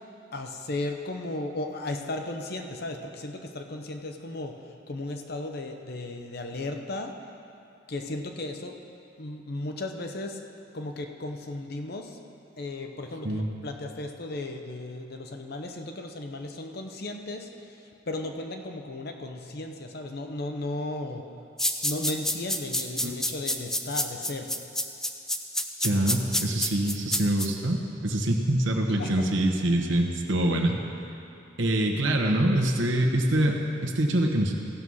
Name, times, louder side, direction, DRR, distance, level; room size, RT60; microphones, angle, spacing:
voice 1, 0.3-7.1 7.9-8.8 9.2-10.4 10.7-12.2 12.6-21.3 21.8-24.5 28.9-29.2, left 2 dB, 50° left, 4 dB, 0.8 m, -35 dB
sound 1, 21.6-27.5, left 1 dB, 5° left, 0.3 m, -28 dB
voice 2, 25.8-30.8 31.6-34.5, right 1 dB, 70° right, 1 dB, 1.1 m, -25 dB
15.5 x 5.5 x 6.3 m, 2.7 s
head